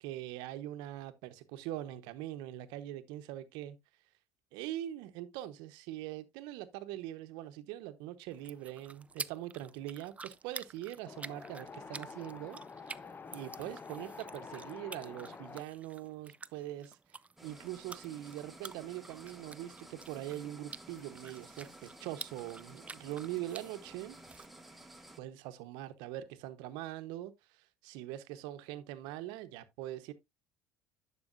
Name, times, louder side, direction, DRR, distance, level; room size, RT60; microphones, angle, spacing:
voice 1, 0.0-3.8 4.5-12.6 13.3-17.0 17.4-24.2 25.2-30.1, right 13 dB, 75° right, 1.0 m, -42 dB
sound 1, 8.3-24.5, right 4 dB, 20° right, 0.4 m, -50 dB
Wind, 11.1-15.6, left 4 dB, 25° left, 0.7 m, -48 dB
sound 2, 17.4-25.2, right 1 dB, ahead, 1.6 m, -54 dB
11.0 x 6.2 x 2.5 m
supercardioid pair, 80°, 8 cm